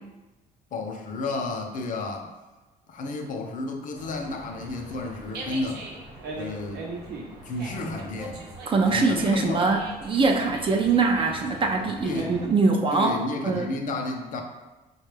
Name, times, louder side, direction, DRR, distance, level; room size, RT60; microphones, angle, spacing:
voice 1, 0.7-2.3 2.9-5.9 6.3-6.9 7.4-8.4 8.9-9.8 12.0-12.5 12.9-14.4, left 2 dB, 50° left, 3 dB, 0.6 m, -32 dB
Dog, 3.9-12.5, right 2 dB, 80° right, 0.7 m, -40 dB
voice 2, 8.7-9.8 10.0-13.2 13.4-13.7, right 3 dB, 30° right, 3 dB, 0.3 m, -23 dB
4.3 x 2.3 x 3.3 m, 1.1 s
cardioid pair, 110°, 17 cm